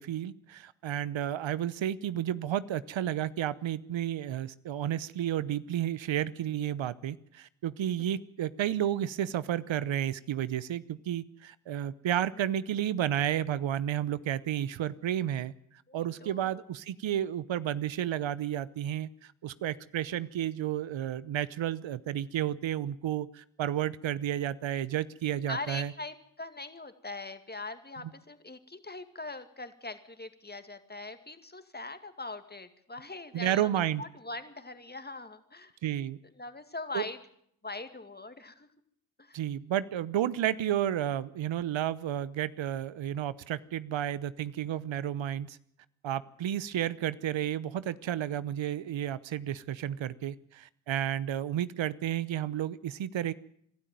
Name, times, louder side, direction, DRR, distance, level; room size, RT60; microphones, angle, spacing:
voice 1, 0.0-15.5 15.9-19.1 19.4-25.9 33.3-34.0 35.8-36.2 36.9-37.0 39.3-45.6 46.0-53.3, right 11 dB, 70° right, 18 dB, 0.9 m, -32 dB
voice 2, 15.9-16.7 25.5-33.7 34.0-35.7 36.4-37.2 37.6-38.7 39.2-39.4, left 2 dB, 20° left, 9 dB, 2.3 m, -41 dB
22.5 x 12.5 x 9.3 m, 0.70 s
supercardioid pair, 45°, 48 cm